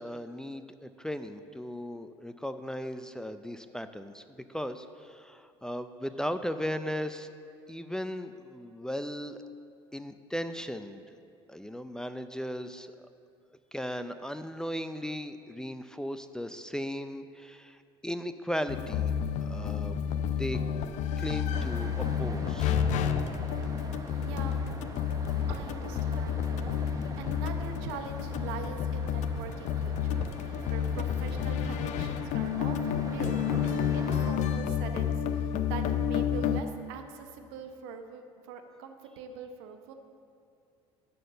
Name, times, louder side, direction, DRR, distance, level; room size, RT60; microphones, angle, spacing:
voice 1, 0.0-7.3 7.7-9.4 9.9-11.0 11.5-12.9 13.7-19.1 19.4-20.0 20.4-20.6 21.2-22.8, equal, 5° left, 10 dB, 0.5 m, -37 dB
sound 1, 18.7-36.6, left 8 dB, 60° left, 0.5 m, -30 dB
sound 2, 21.5-34.3, right 3 dB, 25° right, 0.9 m, -43 dB
voice 2, 24.1-24.6 25.5-39.9, right 6 dB, 80° right, 6 dB, 0.9 m, -43 dB
11.0 x 4.5 x 6.4 m, 2.4 s
hypercardioid pair, 70°, 14 cm